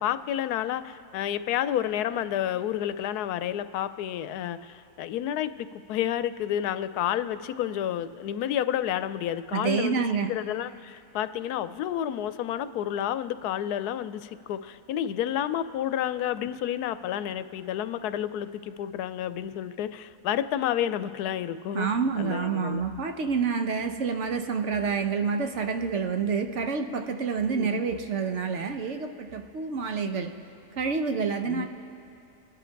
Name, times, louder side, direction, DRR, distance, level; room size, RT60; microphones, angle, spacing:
voice 1, 0.0-22.8 27.5-27.8 31.5-31.7, left 11 dB, 90° left, 13 dB, 1.1 m, -30 dB
voice 2, 9.5-10.3 21.7-30.3 30.7-31.7, right 5 dB, 60° right, 6 dB, 0.9 m, -28 dB
28.0 x 10.0 x 4.5 m, 2.7 s
omnidirectional pair, 1.6 m